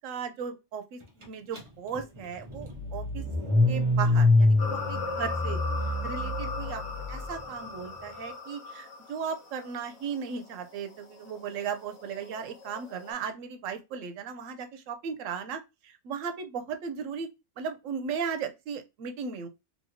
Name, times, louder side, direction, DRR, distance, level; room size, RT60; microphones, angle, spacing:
voice 1, 0.0-3.2 3.7-5.6 6.0-6.8 7.1-17.3 17.6-19.5, right 6 dB, 90° right, 1.0 m, -36 dB
Car / Engine starting, 1.5-1.6 2.0-7.2, left 2 dB, 30° right, 0.6 m, -25 dB
sound 1, 4.6-13.1, left 3 dB, 70° left, 1.1 m, -39 dB
2.9 x 2.8 x 2.6 m
omnidirectional pair, 1.3 m